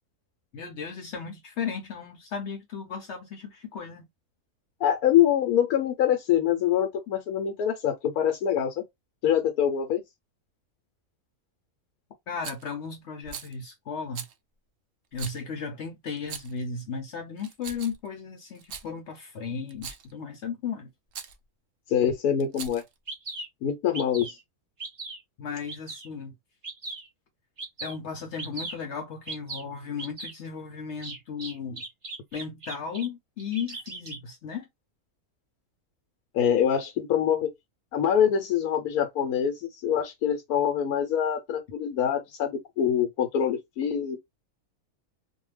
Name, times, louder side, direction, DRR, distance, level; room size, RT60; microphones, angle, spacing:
voice 1, 0.5-4.0 12.3-14.2 15.1-20.9 25.4-26.3 27.8-31.8 32.3-34.7, left 6 dB, 60° left, 0.8 m, -35 dB
voice 2, 4.8-8.7 9.2-10.0 21.9-22.8 23.6-24.3 36.3-37.5 37.9-39.5 39.8-44.2, left 9 dB, 80° left, 1.1 m, -24 dB
Rattle, 12.4-12.7 13.2-13.5 14.1-14.3 15.1-15.4 16.2-16.6 17.4-18.1 18.5-18.9 19.7-20.1 21.1-21.4 22.4-22.9, right 7 dB, 80° right, 0.5 m, -40 dB
Bird vocalization bird call bird song, 22.6-22.7 23.1-23.5 23.9-24.4 24.8-25.2 25.7-26.1 26.6-27.1 27.6-28.0 28.4-28.8 29.3-29.6 30.0-30.3 31.0-33.1 33.4-34.2, right 3 dB, 35° right, 0.6 m, -38 dB
2.6 x 2.2 x 3.2 m
omnidirectional pair, 1.6 m